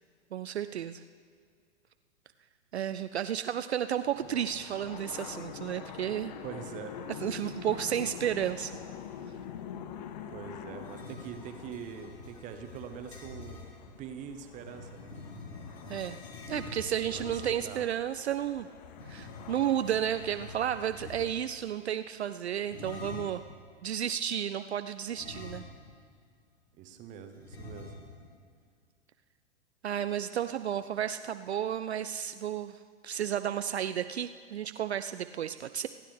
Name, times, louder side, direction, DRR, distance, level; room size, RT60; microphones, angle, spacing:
voice 1, 0.3-1.0 2.7-6.3 7.2-8.7 15.9-16.2 16.5-18.7 19.1-23.4 23.8-25.6 29.8-35.9, right 10 dB, 60° right, 11 dB, 0.5 m, -32 dB
sound 1, 4.1-21.7, left 8 dB, 35° left, 0.7 m, -46 dB
voice 2, 6.4-7.0 10.3-13.6 14.0-15.1 17.0-17.8 26.8-27.9, right 8 dB, 20° right, 7 dB, 0.9 m, -43 dB
sound 2, 10.8-13.7 14.6-17.7 18.9-21.5 22.6-23.5 25.1-26.0 26.3-26.4 27.4-28.3, left 3 dB, 55° left, 3.2 m, -46 dB
28.0 x 10.0 x 3.4 m, 2.1 s
figure-of-eight pair, 110°, 36 cm